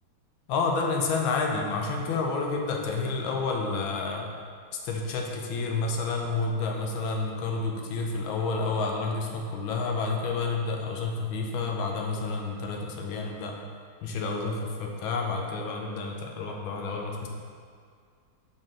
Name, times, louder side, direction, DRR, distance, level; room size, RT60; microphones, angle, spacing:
voice 1, 0.5-4.3 4.8-13.6 14.0-17.3, left 4 dB, 85° left, 1 dB, 1.5 m, -29 dB
6.3 x 4.2 x 3.7 m, 2.1 s
omnidirectional pair, 2.2 m